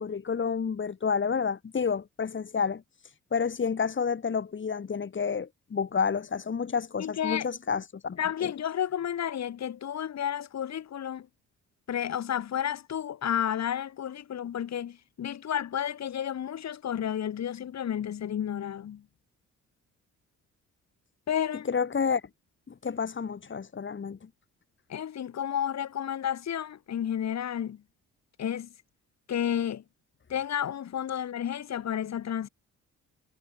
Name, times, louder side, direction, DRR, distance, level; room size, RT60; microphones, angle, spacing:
voice 1, 0.0-8.5 21.7-22.2 22.7-24.2, left 6 dB, 40° left, 5.4 m, -30 dB
voice 2, 7.0-7.5 8.2-11.3 11.9-19.0 21.3-21.7 24.9-27.8 28.4-28.7 29.3-29.8 30.3-32.5, left 9 dB, 60° left, 5.3 m, -31 dB
cardioid pair, 90°, 30 cm